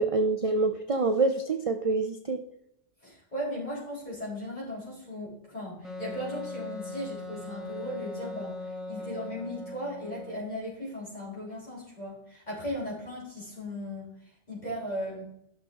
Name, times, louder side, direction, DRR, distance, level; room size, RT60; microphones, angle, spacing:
voice 1, 0.0-2.4, right 3 dB, 40° right, 7 dB, 0.5 m, -26 dB
voice 2, 3.0-8.6 8.9-14.1 14.5-15.2, equal, 40° left, -6 dB, 4.3 m, -37 dB
Wind instrument woodwind instrument, 5.8-10.5, left 2 dB, ahead, 1.0 m, -39 dB
12.0 x 6.3 x 3.6 m, 0.77 s
omnidirectional pair, 1.2 m